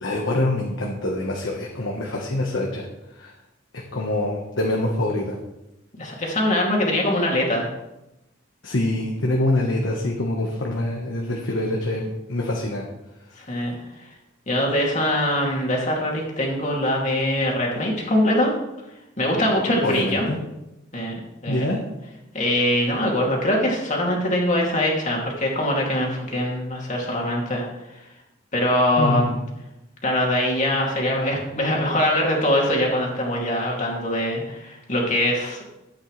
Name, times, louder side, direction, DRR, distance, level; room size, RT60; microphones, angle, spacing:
voice 1, 0.0-2.9 3.2-3.3 3.9-5.4 8.6-12.8 19.8-20.4 21.5-21.8 29.0-29.4, left 1 dB, 70° left, 0 dB, 1.3 m, -25 dB
voice 2, 6.0-7.7 13.5-13.7 14.5-18.5 19.2-20.3 20.9-21.2 21.4-21.7 22.3-27.7 28.5-29.3 30.0-35.6, left 1 dB, 40° left, -1 dB, 2.6 m, -22 dB
13.0 x 8.9 x 3.3 m, 0.93 s
head